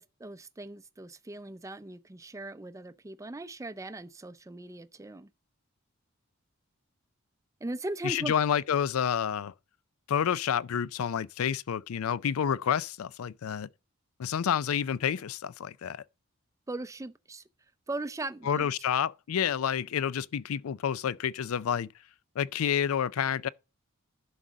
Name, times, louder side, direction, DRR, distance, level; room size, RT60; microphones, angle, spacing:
voice 1, 0.0-5.3 7.6-8.3 16.7-17.4 17.9-18.7, right 2 dB, 15° right, 0.5 m, -39 dB
voice 2, 8.0-9.5 10.1-13.7 14.2-16.0 18.5-21.9 22.4-23.5, left 8 dB, 80° left, 0.4 m, -29 dB
11.0 x 4.0 x 6.2 m
head